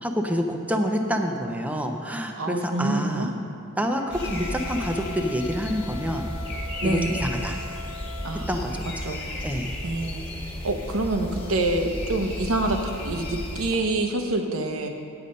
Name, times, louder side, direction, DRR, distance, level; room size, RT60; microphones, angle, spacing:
voice 1, 0.0-3.3 3.7-6.3 6.8-7.6 8.5-8.9 9.4-9.7, equal, 5° right, 4 dB, 0.6 m, -27 dB
voice 2, 2.4-3.4 4.2-4.3 6.8-7.3 8.2-9.2 9.8-10.2 10.6-14.9, right 2 dB, 80° right, 4 dB, 1.0 m, -27 dB
Wind instrument woodwind instrument, 3.9-8.6, left 5 dB, 60° left, 0.4 m, -41 dB
sound 1, 4.1-13.8, left 1 dB, 25° left, 1.6 m, -34 dB
8.8 x 8.4 x 5.3 m, 2.4 s
head